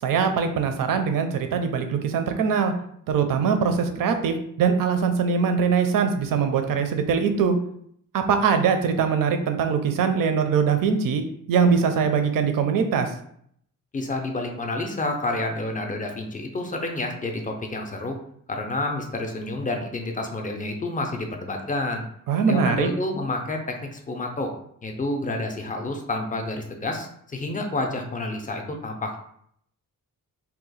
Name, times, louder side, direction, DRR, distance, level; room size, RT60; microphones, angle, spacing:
voice 1, 0.0-2.7 3.1-7.5 8.1-11.2 11.5-13.1 22.3-22.9, right 6 dB, 70° right, 7 dB, 0.5 m, -22 dB
voice 2, 13.9-18.2 18.5-22.0 22.5-24.5 24.8-29.2, left 2 dB, 25° left, 3 dB, 0.4 m, -29 dB
2.7 x 2.2 x 4.0 m, 0.68 s
wide cardioid pair, 165°, 34 cm